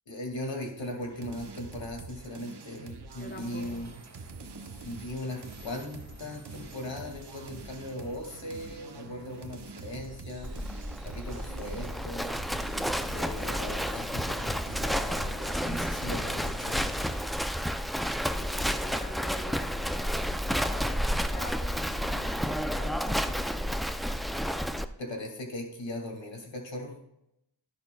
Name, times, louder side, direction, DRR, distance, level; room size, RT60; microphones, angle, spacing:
voice 1, 0.1-3.9 4.8-10.5 11.0-12.3 13.1-17.0 25.0-27.0, left 1 dB, 75° left, 2 dB, 2.2 m, -39 dB
sound 1, 0.8-17.3, right 4 dB, 60° right, 0.9 m, -46 dB
voice 2, 3.2-3.9 18.4-23.9, left 1 dB, 25° left, 3 dB, 1.0 m, -45 dB
Train Crash Simulation, 3.2-16.5, right 2 dB, 35° right, 1.2 m, -54 dB
Livestock farm animals working animals, 10.4-24.8, equal, ahead, 0.4 m, -31 dB
11.5 x 10.5 x 2.3 m, 0.81 s
wide cardioid pair, 70°, 45 cm